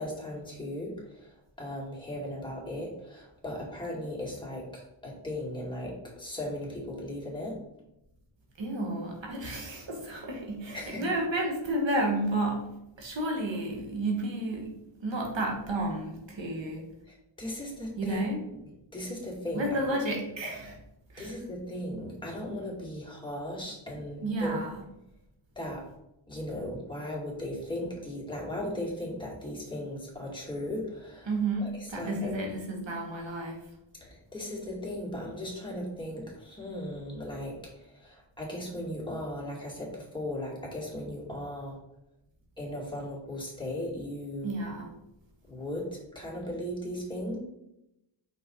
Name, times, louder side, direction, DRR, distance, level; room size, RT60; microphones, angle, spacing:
voice 1, 0.0-7.5 10.7-11.1 17.1-18.2 18.9-20.0 21.2-24.6 25.6-25.9 26.3-31.3 31.6-32.4 34.0-41.8 42.6-44.5 45.5-47.4, left 1 dB, 10° left, -4 dB, 2.4 m, -37 dB
voice 2, 8.6-12.7 13.0-14.7 15.0-16.8 18.0-18.4 19.5-20.8 21.1-21.3 24.2-24.7 31.3-33.6 44.4-44.9, right 1 dB, 70° right, 0 dB, 1.6 m, -31 dB
5.7 x 4.6 x 3.9 m, 0.86 s
wide cardioid pair, 80°, 47 cm